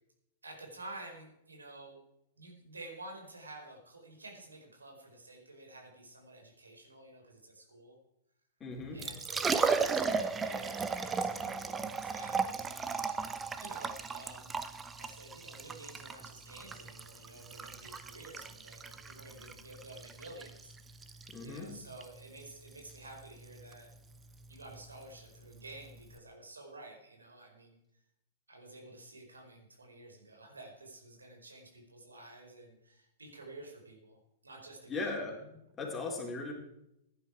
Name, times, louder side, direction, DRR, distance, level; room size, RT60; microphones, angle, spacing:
voice 1, 0.4-2.0 2.4-8.0 8.9-14.5 15.0-20.7 21.4-23.9 24.5-27.8 28.5-35.1, right 2 dB, 85° right, 2 dB, 4.7 m, -51 dB
voice 2, 8.6-9.0 21.3-21.7 34.9-36.5, left 3 dB, 20° left, -1 dB, 4.4 m, -38 dB
Liquid, 8.8-26.2, right 5 dB, 15° right, 1.0 m, -36 dB
16.0 x 11.0 x 4.8 m, 0.82 s
figure-of-eight pair, 105°, 0 cm